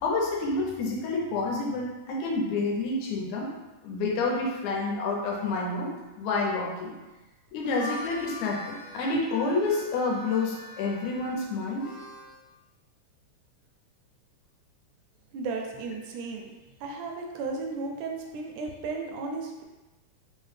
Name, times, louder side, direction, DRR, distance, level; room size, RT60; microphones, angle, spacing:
voice 1, 0.0-3.5 3.8-6.9 7.5-11.9, left 3 dB, 75° left, -2 dB, 1.9 m, -29 dB
Harmonica, 7.5-12.4, left 1 dB, 45° left, 0.8 m, -43 dB
voice 2, 15.3-16.5 16.8-19.6, right 3 dB, 80° right, 2 dB, 1.9 m, -34 dB
4.9 x 2.1 x 3.2 m, 1.1 s
omnidirectional pair, 3.5 m